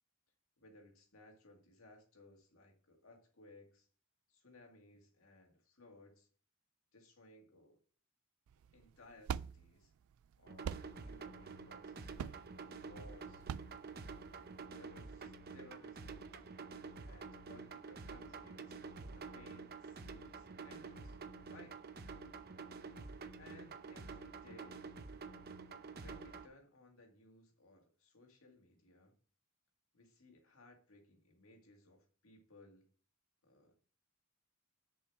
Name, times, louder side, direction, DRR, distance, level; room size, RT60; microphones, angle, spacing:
voice 1, 0.6-3.9 4.3-6.3 6.9-7.8 8.7-9.9 10.4-13.4 14.7-16.3 17.0-18.8 19.1-21.2 21.5-21.8 23.4-24.8 26.0-29.2 29.9-32.9 33.4-33.7, left 2 dB, 80° left, 2 dB, 2.2 m, -61 dB
sound 1, 8.5-14.7, right 7 dB, 80° right, 0.3 m, -45 dB
sound 2, 10.5-26.5, right 4 dB, 50° right, 0.7 m, -49 dB
6.7 x 5.4 x 5.9 m, 0.42 s
head